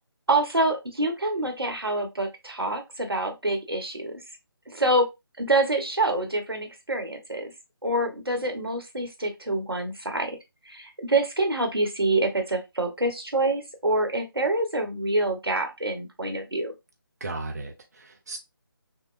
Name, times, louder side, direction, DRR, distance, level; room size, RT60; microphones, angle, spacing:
voice 1, 0.3-4.2 4.7-5.0 5.4-7.5 7.8-10.4 10.6-16.7, right 2 dB, 80° right, 1.3 m, -26 dB
voice 2, 17.2-18.4, right 2 dB, 45° right, 0.7 m, -35 dB
5.8 x 2.2 x 2.5 m
figure-of-eight pair, 155°, 12 cm